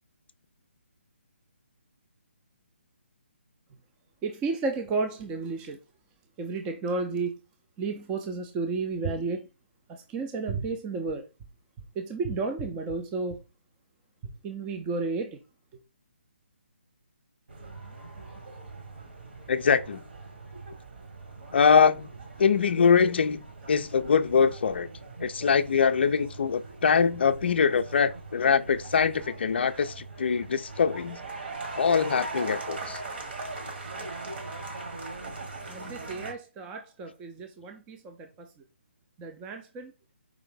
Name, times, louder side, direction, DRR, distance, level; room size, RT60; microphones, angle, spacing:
voice 1, 4.2-5.8 6.4-7.3 7.8-9.5 9.9-11.3 12.0-13.4 14.2-15.4 35.7-38.5 39.2-39.9, right 4 dB, 15° right, 0.4 m, -32 dB
sound 1, 17.5-36.3, right 3 dB, 55° right, 1.3 m, -41 dB
voice 2, 19.5-20.0 21.5-22.1 22.4-23.4 23.7-24.9 25.2-31.2 31.8-33.0, left 6 dB, 60° left, 0.4 m, -23 dB
4.7 x 2.5 x 3.7 m
figure-of-eight pair, 145°, 7 cm